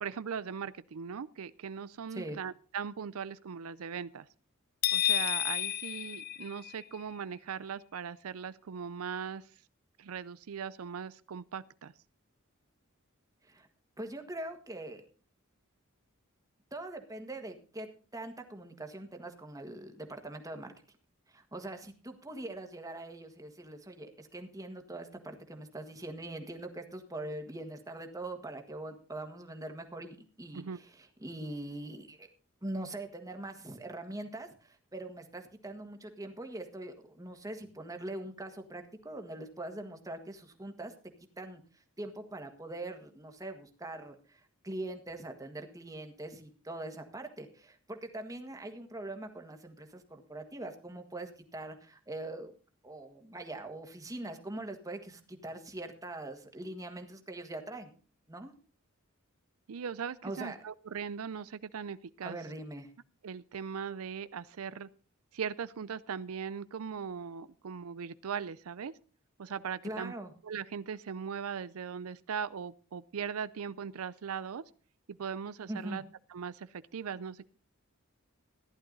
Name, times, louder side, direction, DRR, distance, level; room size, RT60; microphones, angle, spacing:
voice 1, 0.0-4.3 4.9-9.5 10.0-11.9 30.5-30.8 59.7-62.4 63.2-64.9 65.3-68.9 69.4-70.1 70.4-74.6 75.1-76.0 76.3-77.4, right 7 dB, 90° right, 16 dB, 0.5 m, -39 dB
sound 1, 4.8-7.0, left 12 dB, 45° left, 0.5 m, -31 dB
voice 2, 14.0-15.1 16.7-17.9 18.1-20.7 21.3-32.3 32.6-40.9 41.4-41.6 42.0-52.5 52.8-57.9 58.3-58.5 60.2-60.6 62.2-62.9 69.8-70.3 75.7-76.0, right 1 dB, 15° right, 5 dB, 1.6 m, -42 dB
15.0 x 11.0 x 3.9 m, 0.38 s
head